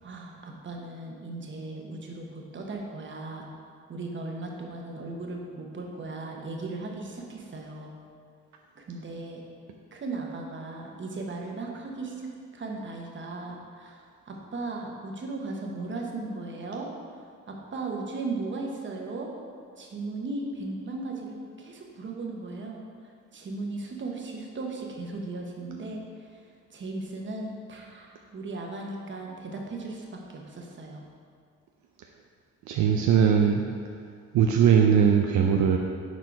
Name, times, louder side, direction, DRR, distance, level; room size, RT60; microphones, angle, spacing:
voice 1, 0.0-3.5 3.9-7.9 8.8-9.4 9.9-16.9 17.1-19.3 19.8-22.8 23.3-26.4 26.7-31.0, right 3 dB, 40° right, 0 dB, 1.1 m, -37 dB
voice 2, 32.7-33.7 34.3-35.8, right 7 dB, 70° right, 1 dB, 0.5 m, -20 dB
6.3 x 4.4 x 4.6 m, 2.1 s
cardioid pair, 90°, 30 cm